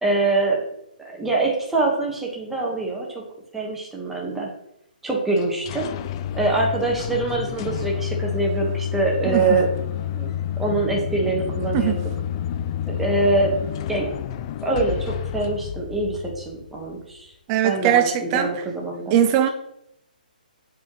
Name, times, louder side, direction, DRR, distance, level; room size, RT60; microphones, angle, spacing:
voice 1, 0.0-0.6 1.0-3.1 3.5-4.5 5.0-5.9 6.3-9.7 10.1-10.3 10.6-12.0 12.9-13.5 13.9-14.1 14.6-17.3 17.6-19.2, right 3 dB, 5° right, 1.4 m, -24 dB
sound 1, 5.4-17.0, left 10 dB, 35° left, 0.3 m, -29 dB
voice 2, 9.3-9.6 11.7-12.0 17.5-18.5 19.1-19.5, right 10 dB, 25° right, 0.6 m, -20 dB
7.3 x 4.3 x 3.1 m
hypercardioid pair, 145°, 5 cm